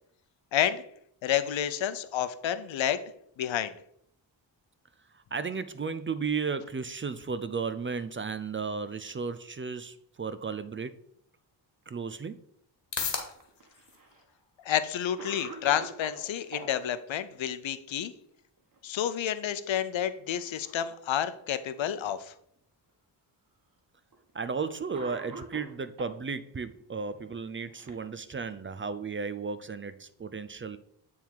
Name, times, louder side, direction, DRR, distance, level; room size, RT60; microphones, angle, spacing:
voice 1, 0.5-0.8 1.2-3.0 3.4-3.7 14.7-18.1 18.8-22.2, left 10 dB, 85° left, 12 dB, 0.7 m, -30 dB
voice 2, 5.3-10.9 11.9-12.4 24.3-30.8, right 5 dB, 30° right, 13 dB, 0.5 m, -34 dB
sound 1, 11.4-28.4, left 6 dB, 65° left, 1.6 m, -47 dB
Cough, 13.4-14.2 14.8-14.9 15.2-16.7 18.6-19.0 19.3-19.5 20.3-21.0 21.8-21.9 22.9-23.0 24.1-24.3 24.9-26.2 27.2-28.6, right 3 dB, 45° right, 1.5 m, -46 dB
9.0 x 3.6 x 4.6 m, 0.68 s
cardioid pair, 85°, 45 cm